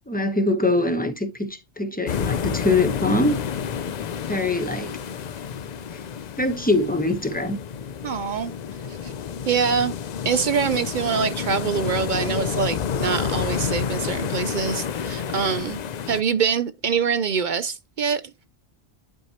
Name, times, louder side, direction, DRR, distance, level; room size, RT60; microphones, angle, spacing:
voice 1, 0.1-3.4 4.3-4.9 6.4-7.6, left 2 dB, 10° left, 0.8 m, -23 dB
sound 1, 2.1-16.2, left 7 dB, 55° left, 0.5 m, -29 dB
voice 2, 8.0-8.5 9.0-9.1 9.5-9.9 10.2-15.8 16.1-18.2, right 6 dB, 60° right, 0.6 m, -24 dB
11.0 x 4.6 x 2.9 m
omnidirectional pair, 1.1 m